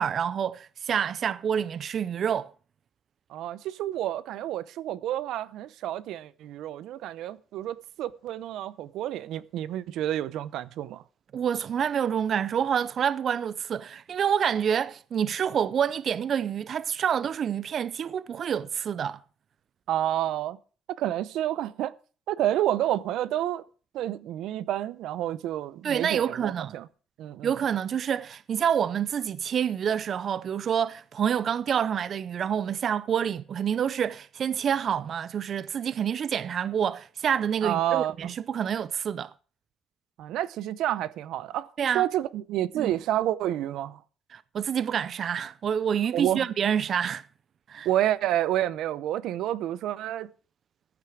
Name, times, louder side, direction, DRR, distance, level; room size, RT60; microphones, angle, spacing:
voice 1, 0.0-2.5 11.3-19.2 25.8-26.8 27.4-39.3 41.8-42.1 42.8-42.9 44.3-47.2 47.7-47.9, right 8 dB, 50° right, 0.5 m, -27 dB
voice 2, 3.3-11.0 19.9-20.6 21.0-21.9 22.3-23.6 23.9-26.9 27.2-27.5 37.6-38.3 40.2-41.7 41.9-44.0 46.1-46.5 47.8-50.3, right 12 dB, 90° right, 0.7 m, -29 dB
15.0 x 9.4 x 4.9 m
cardioid pair, 125°, 0 cm